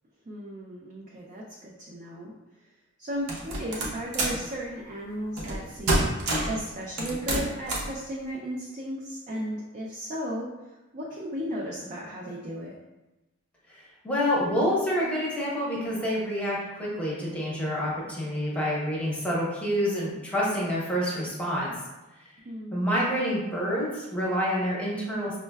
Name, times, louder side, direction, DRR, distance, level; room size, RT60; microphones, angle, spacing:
voice 1, 0.3-2.3 3.0-6.1 6.5-10.5 10.9-12.8 22.4-22.8, equal, 35° right, -3 dB, 0.4 m, -35 dB
sound 1, 3.3-4.4 5.4-5.6 5.9-6.6 7.0-7.9, right 1 dB, 80° right, 0.7 m, -27 dB
voice 2, 13.7-21.7 22.2-22.3 22.7-25.4, equal, 5° left, -6 dB, 0.8 m, -28 dB
5.4 x 2.1 x 2.2 m, 1.0 s
head